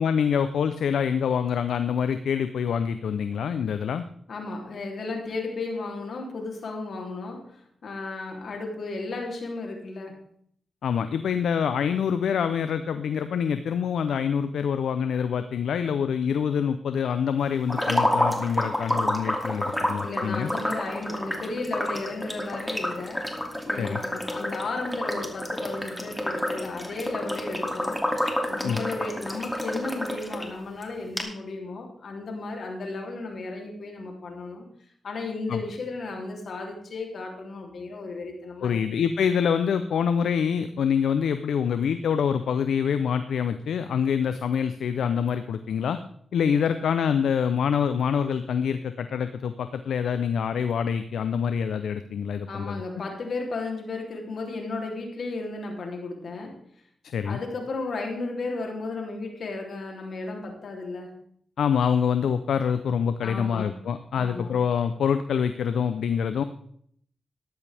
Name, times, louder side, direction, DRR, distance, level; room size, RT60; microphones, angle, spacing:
voice 1, 0.0-4.0 10.8-20.5 23.8-24.0 28.6-28.8 35.5-35.6 38.6-46.0 46.3-52.8 57.1-57.4 61.6-66.4, left 7 dB, 85° left, 10 dB, 0.6 m, -26 dB
voice 2, 4.3-10.3 20.0-28.1 28.5-34.6 35.0-38.8 52.5-56.6 57.2-61.3 63.2-63.8 64.1-64.6, left 3 dB, 65° left, 2 dB, 3.2 m, -34 dB
sound 1, 17.7-30.5 30.8-30.9 31.2-31.3, left 1 dB, 10° left, 2.7 m, -29 dB
13.5 x 11.0 x 3.5 m, 0.63 s
cardioid pair, 55°, 0 cm